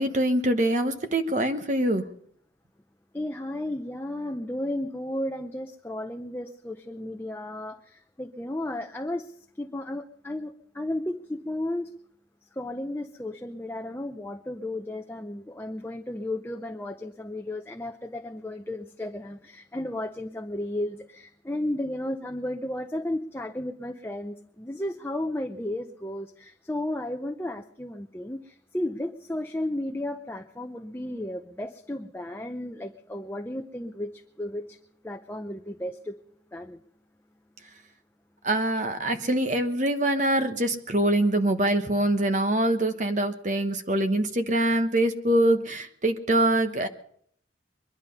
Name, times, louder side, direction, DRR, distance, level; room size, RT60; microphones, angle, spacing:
voice 1, 0.0-2.1 38.4-46.9, right 1 dB, 40° right, 8 dB, 1.2 m, -24 dB
voice 2, 3.1-11.9 12.5-34.8 35.0-36.2 36.5-36.8, left 1 dB, 10° left, 4 dB, 0.6 m, -34 dB
23.0 x 11.0 x 5.5 m, 0.64 s
head